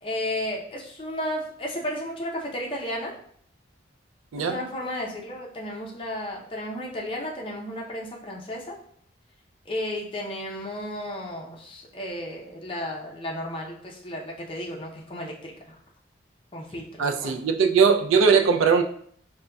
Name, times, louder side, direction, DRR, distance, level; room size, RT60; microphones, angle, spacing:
voice 1, 0.0-3.1 4.4-8.7 9.7-15.8 16.5-17.4, left 1 dB, 25° left, -2 dB, 0.5 m, -33 dB
voice 2, 17.0-18.8, right 5 dB, 85° right, 5 dB, 0.4 m, -20 dB
5.0 x 2.2 x 2.2 m, 0.63 s
head